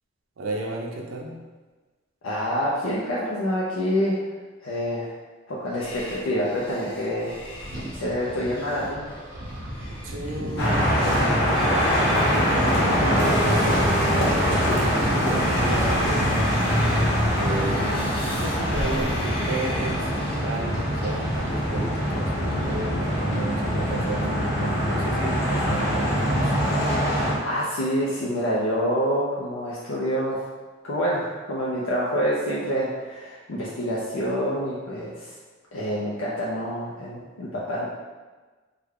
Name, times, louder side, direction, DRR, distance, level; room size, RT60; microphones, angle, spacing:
voice 1, 0.4-1.4 9.9-13.7 14.1-16.5 17.4-26.5, right 2 dB, 80° right, 0 dB, 0.6 m, -33 dB
voice 2, 2.2-4.2 4.6-5.1 5.5-7.4 7.9-9.0 27.4-30.4 30.8-35.3 35.7-37.9, equal, 80° left, -6 dB, 0.5 m, -27 dB
sound 1, 5.8-20.4, left 1 dB, 25° left, 0.5 m, -38 dB
sound 2, 7.5-24.2, equal, 50° right, 0.8 m, -35 dB
sound 3, 10.6-27.3, equal, 55° left, 0.8 m, -23 dB
3.3 x 2.2 x 3.5 m, 1.3 s
head